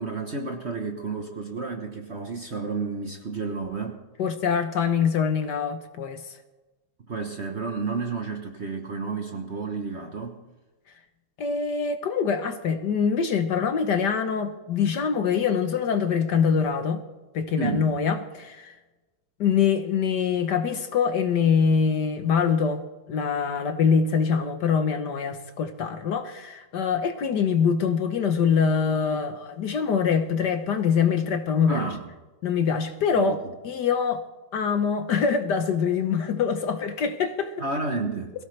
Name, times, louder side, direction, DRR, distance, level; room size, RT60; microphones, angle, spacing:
voice 1, 0.0-4.0 7.1-10.4 17.6-17.9 31.7-32.1 33.1-33.5 37.6-38.3, right 4 dB, 40° right, 1.1 m, -31 dB
voice 2, 4.2-6.2 11.4-17.0 17.3-18.7 19.4-22.8 23.1-31.9 32.4-34.2 34.5-37.5, left 6 dB, 60° left, 1.4 m, -24 dB
22.5 x 16.0 x 3.3 m
omnidirectional pair, 2.3 m